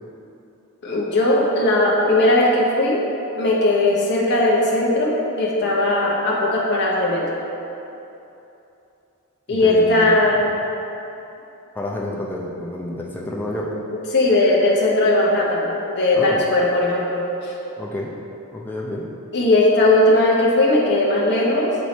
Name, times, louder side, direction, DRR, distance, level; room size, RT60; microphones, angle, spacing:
voice 1, 0.8-3.0 3.4-7.4 9.5-10.5 13.9-17.5 19.3-21.8, left 1 dB, 50° left, -4 dB, 0.9 m, -18 dB
voice 2, 9.5-10.5 11.7-13.7 16.1-16.5 17.8-18.1 18.5-19.1, left 1 dB, 10° left, -3 dB, 0.5 m, -29 dB
6.9 x 4.6 x 4.1 m, 2.9 s
head